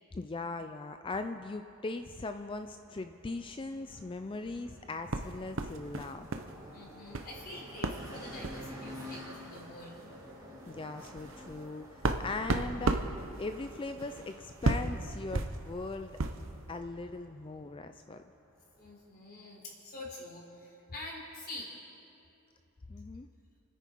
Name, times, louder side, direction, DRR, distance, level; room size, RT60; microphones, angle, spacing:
voice 1, 0.1-6.3 10.7-13.0 13.4-16.2 16.7-18.2 22.9-23.3, left 3 dB, 25° left, 8 dB, 0.4 m, -39 dB
sound 1, 1.6-19.1, equal, 15° right, 2.5 m, -51 dB
sound 2, 5.1-6.5 6.8-7.3 7.8-8.0 8.4-8.7 9.5-9.6 10.0-10.1 10.6-16.5, right 2 dB, 60° right, 0.9 m, -34 dB
voice 2, 6.7-10.0 18.8-21.7, left 2 dB, 45° left, -3 dB, 3.9 m, -46 dB
29.5 x 10.0 x 4.6 m, 2.8 s
head